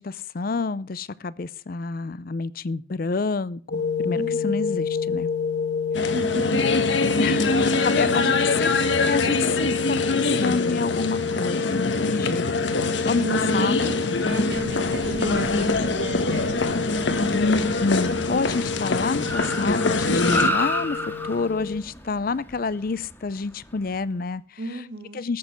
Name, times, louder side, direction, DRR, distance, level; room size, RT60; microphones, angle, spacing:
voice 1, 0.0-5.3 7.2-8.7 9.0-13.3 13.5-13.8 17.3-24.4 25.1-25.4, left 4 dB, 45° left, 19 dB, 0.5 m, -28 dB
sound 1, 3.7-21.8, left 6 dB, 85° left, 1.6 m, -29 dB
voice 2, 4.1-4.7 6.1-6.6 7.9-8.4 13.2-17.4 24.6-25.2, right 2 dB, 55° right, 6 dB, 2.1 m, -34 dB
sound 2, 5.9-20.5, left 3 dB, 70° left, 1.3 m, -24 dB
Car, 14.5-23.9, left 1 dB, 10° left, 1.9 m, -33 dB
14.0 x 6.7 x 6.8 m, 0.41 s
head